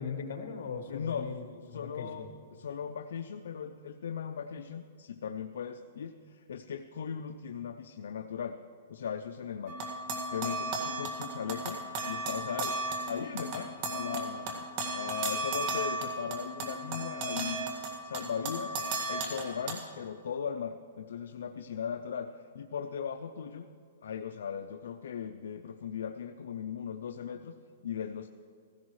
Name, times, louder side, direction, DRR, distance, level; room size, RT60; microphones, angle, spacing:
voice 1, 0.0-2.3, left 6 dB, 65° left, 5 dB, 1.6 m, -39 dB
voice 2, 0.9-1.3 1.7-8.6 8.9-9.8 10.3-12.8 13.1-17.7 18.0-18.7 19.1-23.7 24.0-27.5 27.8-28.3, left 7 dB, 80° left, 7 dB, 0.5 m, -38 dB
sound 1, 9.7-19.7, right 2 dB, 40° right, 1.9 m, -35 dB
15.5 x 15.5 x 3.2 m, 2.2 s
hypercardioid pair, 155°, 0 cm